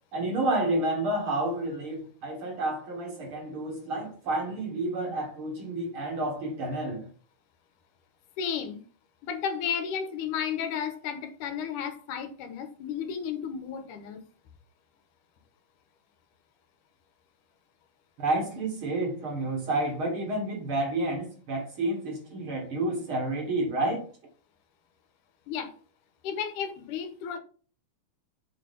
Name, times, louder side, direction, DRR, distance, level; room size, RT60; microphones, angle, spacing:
voice 1, 0.1-7.1 18.2-24.0, right 2 dB, 50° right, 1.9 m, -30 dB
voice 2, 8.4-8.8 9.2-14.2 25.5-25.7 26.2-27.4, left 7 dB, 85° left, 2.6 m, -33 dB
6.9 x 4.7 x 5.2 m
omnidirectional pair, 3.6 m